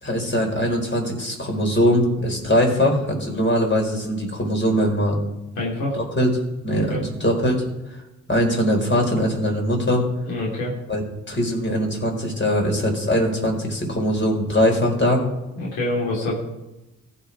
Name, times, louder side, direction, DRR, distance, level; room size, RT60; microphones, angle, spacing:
voice 1, 0.0-5.2 5.9-6.3 6.6-7.6 7.9-8.0 8.3-10.0 10.9-11.0 11.3-15.2, equal, 30° left, 1 dB, 4.9 m, -21 dB
voice 2, 5.6-6.0 6.7-7.0 10.3-10.7 15.5-16.4, left 1 dB, 85° left, -4 dB, 3.3 m, -26 dB
20.0 x 6.7 x 4.8 m, 0.99 s
hypercardioid pair, 40°, 35 cm